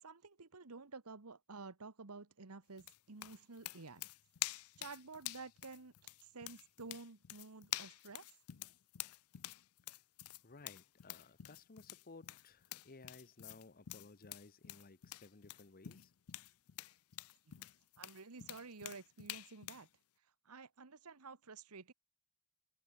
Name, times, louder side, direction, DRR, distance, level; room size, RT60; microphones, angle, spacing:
voice 1, 0.0-4.1 4.8-8.3 17.5-17.6 18.0-19.9 20.4-21.9, right 4 dB, 85° right, 1.4 m, -52 dB
sound 1, 2.8-19.9, left 15 dB, 75° left, 0.6 m, -48 dB
voice 2, 10.4-16.1, left 3 dB, 40° left, 1.0 m, -58 dB
head